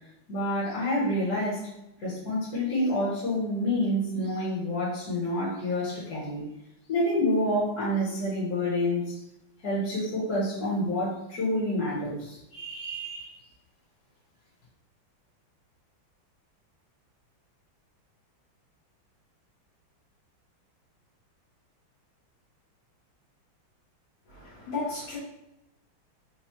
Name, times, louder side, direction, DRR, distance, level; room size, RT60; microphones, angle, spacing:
voice 1, 0.3-1.7 2.0-6.4 6.9-9.0 9.6-13.3, left 1 dB, 50° left, -8 dB, 1.6 m, -28 dB
voice 2, 24.3-25.2, left 3 dB, 80° left, -8 dB, 1.9 m, -34 dB
4.6 x 2.6 x 3.0 m, 0.85 s
omnidirectional pair, 2.2 m